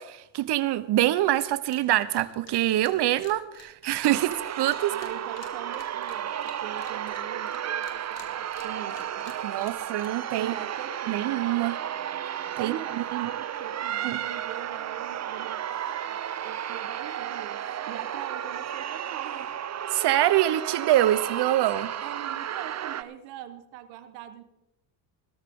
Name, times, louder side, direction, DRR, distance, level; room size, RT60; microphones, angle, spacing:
voice 1, 0.0-4.9 9.4-10.5 11.1-11.8 12.6-13.3 14.0-14.2 19.9-21.9, right 14 dB, 65° right, 15 dB, 1.1 m, -25 dB
sound 1, 1.0-1.1 1.4-1.8 2.1-7.6 7.8-10.4, left 9 dB, 75° left, 2.2 m, -51 dB
sound 2, 4.0-23.0, right 10 dB, 35° right, 0.7 m, -33 dB
voice 2, 4.9-9.3 10.4-11.3 12.6-16.2 16.4-17.6 17.9-19.6 22.0-24.4, right 11 dB, 90° right, 10 dB, 1.5 m, -41 dB
17.5 x 13.5 x 3.8 m, 0.89 s
supercardioid pair, 80°, 44 cm